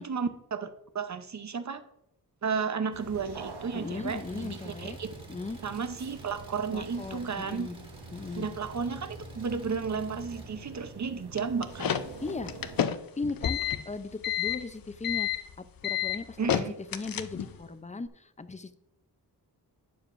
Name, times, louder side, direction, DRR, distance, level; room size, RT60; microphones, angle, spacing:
voice 1, 0.0-1.8 2.4-5.1 5.6-7.7 8.4-11.9 16.4-16.7, right 5 dB, 45° right, 9 dB, 0.8 m, -33 dB
sound 1, 2.9-12.8, right 4 dB, 80° right, 1.3 m, -46 dB
voice 2, 3.7-5.0 5.3-5.6 6.7-7.8 8.1-8.5 12.2-12.5 13.2-18.8, left 3 dB, 20° left, 11 dB, 0.5 m, -38 dB
Engine, 4.0-10.4, equal, 15° right, 1.8 m, -49 dB
sound 2, 11.4-17.6, left 9 dB, 60° left, 0.6 m, -30 dB
12.0 x 8.8 x 2.6 m, 0.79 s
wide cardioid pair, 105°, 39 cm